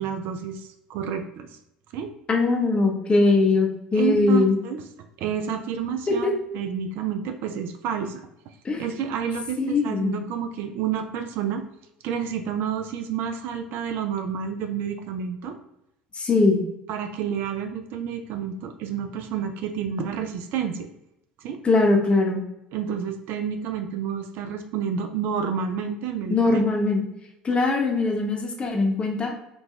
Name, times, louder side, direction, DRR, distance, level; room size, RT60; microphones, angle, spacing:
voice 1, 0.0-1.5 1.9-2.1 3.9-4.8 5.2-8.3 8.8-11.6 12.0-15.6 16.9-20.9 21.4-21.6 22.7-26.7, right 7 dB, 55° right, 7 dB, 0.4 m, -29 dB
voice 2, 2.3-4.6 6.1-6.3 8.6-8.8 9.6-10.2 16.1-16.6 21.6-22.4 26.3-27.0 27.4-29.3, left 3 dB, 25° left, 2 dB, 0.8 m, -21 dB
3.7 x 2.3 x 3.0 m, 0.85 s
hypercardioid pair, 70°, 4 cm